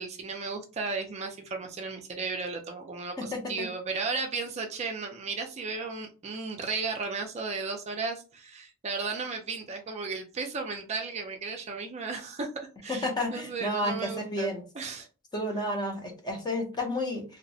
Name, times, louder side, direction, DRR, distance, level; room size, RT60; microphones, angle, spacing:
voice 1, 0.0-12.5 12.8-15.1, right 4 dB, 30° right, 3 dB, 0.4 m, -35 dB
voice 2, 3.2-3.5 12.9-14.6 15.3-17.2, left 1 dB, 20° left, 3 dB, 0.5 m, -31 dB
2.7 x 2.1 x 2.6 m, 0.34 s
head